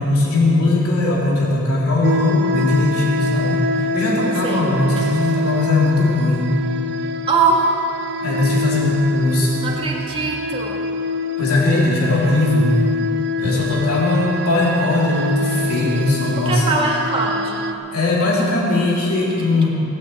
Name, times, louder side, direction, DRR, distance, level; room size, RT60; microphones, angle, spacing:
voice 1, 0.0-6.5 8.2-9.6 11.4-12.7 13.4-16.6 17.9-19.7, left 2 dB, 70° left, -5 dB, 3.6 m, -19 dB
sound 1, 2.0-17.7, left 1 dB, 50° right, 0.8 m, -26 dB
voice 2, 7.3-7.8 9.6-10.8 13.4-13.6 16.4-17.6, right 3 dB, 25° right, -2 dB, 2.2 m, -21 dB
18.0 x 9.5 x 8.0 m, 2.8 s
head